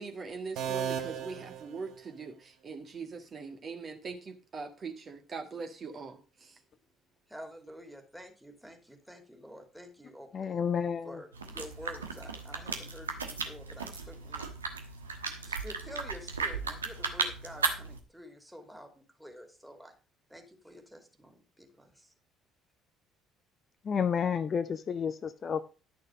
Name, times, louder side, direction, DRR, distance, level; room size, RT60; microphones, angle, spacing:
voice 1, 0.0-6.6, right 4 dB, 35° right, 5 dB, 1.8 m, -42 dB
sound 1, 0.6-2.5, right 8 dB, 55° right, 1.2 m, -36 dB
voice 2, 7.3-10.6 11.0-14.5 14.8-15.0 15.4-19.9 20.3-22.1, equal, 5° right, 4 dB, 2.7 m, -49 dB
voice 3, 10.3-11.2 23.8-25.6, left 7 dB, 35° left, 11 dB, 0.6 m, -30 dB
sound 2, 11.3-18.0, right 4 dB, 80° right, 1.2 m, -36 dB
11.5 x 6.6 x 5.1 m, 0.34 s
figure-of-eight pair, 55°, 0 cm